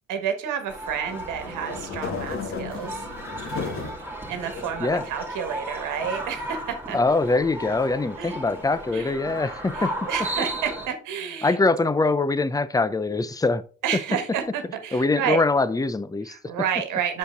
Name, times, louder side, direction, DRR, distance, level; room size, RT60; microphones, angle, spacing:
voice 1, 0.1-3.0 4.3-7.0 8.2-8.4 8.9-9.1 9.7-11.5 13.8-15.4 16.3-17.2, right 8 dB, 90° right, 7 dB, 1.5 m, -30 dB
sound 1, 0.7-10.9, right 1 dB, 5° right, 2.2 m, -35 dB
sound 2, 1.0-4.0 4.6-5.4, left 5 dB, 45° left, 2.2 m, -34 dB
voice 2, 6.9-10.1 11.4-13.6 14.9-16.4, left 3 dB, 10° left, 15 dB, 0.6 m, -23 dB
6.7 x 5.6 x 3.7 m, 0.38 s
cardioid pair, 90°, 30 cm